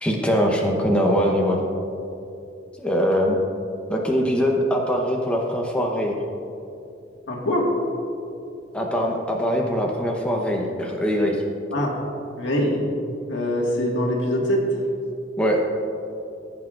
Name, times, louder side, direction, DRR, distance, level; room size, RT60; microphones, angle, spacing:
voice 1, 0.0-1.6 2.8-3.4 3.9-6.2 8.7-11.4 15.4-15.6, equal, 5° left, -1 dB, 0.8 m, -22 dB
voice 2, 7.3-7.7 11.7-11.9 12.4-12.8 13.3-14.7, equal, 80° left, -1 dB, 1.7 m, -23 dB
15.5 x 8.4 x 2.5 m, 2.7 s
head